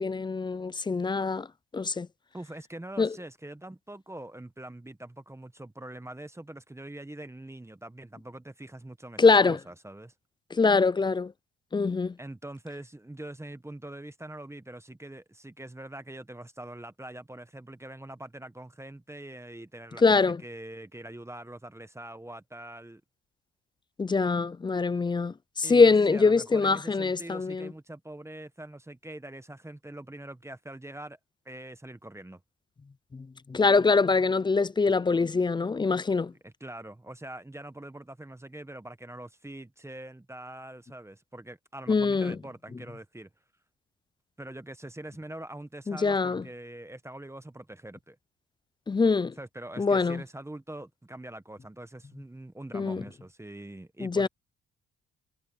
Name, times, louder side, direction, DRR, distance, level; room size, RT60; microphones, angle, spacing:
voice 1, 0.0-1.5 1.7-2.1 3.0-3.1 9.2-9.6 10.5-11.3 11.7-12.1 20.0-20.4 24.0-27.7 33.1-36.3 41.9-42.4 45.9-46.4 48.9-49.3 49.8-50.2 52.7-53.0 54.0-54.3, left 4 dB, 15° left, 0.3 m, -24 dB
voice 2, 2.3-10.1 12.2-23.0 25.6-31.2 31.4-32.4 36.4-43.3 44.4-48.2 49.4-54.3, right 1 dB, 10° right, 1.2 m, -43 dB
cardioid pair, 90°, 30 cm